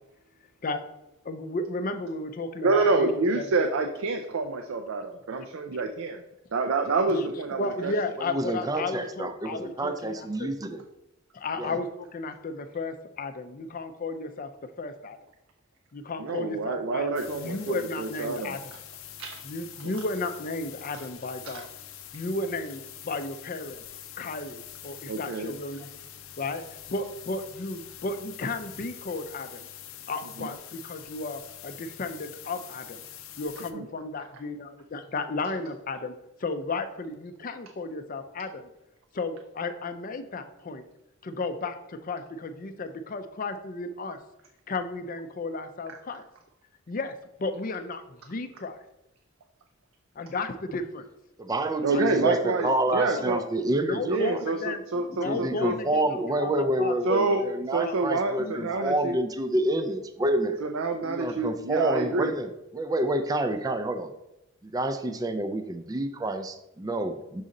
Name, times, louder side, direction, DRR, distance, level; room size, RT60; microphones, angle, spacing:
voice 1, 1.2-3.5 7.1-7.2 7.6-10.5 11.3-14.5 14.8-15.2 15.9-18.7 19.5-21.7 22.1-23.8 24.2-25.9 26.4-26.6 26.9-29.7 30.1-33.0 33.4-36.1 36.4-38.7 39.1-40.8 41.2-44.2 44.7-46.2 46.9-47.1 47.4-48.8 50.2-51.0 51.9-53.4 53.8-54.8 55.1-56.9 57.3-57.5 57.8-57.9 58.4-58.8, left 3 dB, 45° left, 9 dB, 0.5 m, -34 dB
voice 2, 2.6-6.2 6.5-7.9 16.2-18.6 19.2-19.4 21.4-21.6 25.1-25.5 30.4-30.5 33.7-33.9 51.8-53.4 54.0-55.8 57.1-57.4 57.7-59.2 60.6-62.3, right 3 dB, 75° right, 5 dB, 0.5 m, -27 dB
voice 3, 8.2-10.8 11.6-11.8 51.4-54.2 54.9-60.6 61.0-64.1 64.6-67.4, right 1 dB, 20° right, 9 dB, 0.4 m, -28 dB
sound 1, 17.2-33.7, left 10 dB, 90° left, 0.6 m, -45 dB
6.3 x 4.1 x 3.8 m, 0.89 s
head